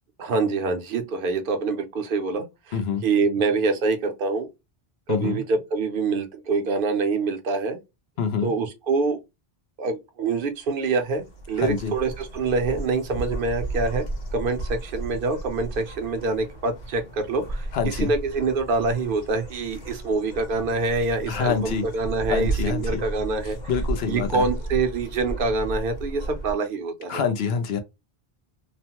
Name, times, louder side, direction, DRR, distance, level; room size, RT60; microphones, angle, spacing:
voice 1, 0.2-2.8 3.0-4.5 5.1-7.8 8.4-9.2 9.8-14.1 14.3-23.6 24.1-27.2, right 4 dB, 60° right, 0.8 m, -25 dB
voice 2, 2.7-3.0 5.1-5.4 8.2-8.5 11.6-11.9 17.7-18.1 21.3-21.9 22.3-23.0 23.4-24.5 27.1-27.8, left 6 dB, 80° left, 0.9 m, -26 dB
sound 1, 10.4-26.5, right 2 dB, 45° left, 1.0 m, -34 dB
3.0 x 2.1 x 2.8 m
omnidirectional pair, 1.1 m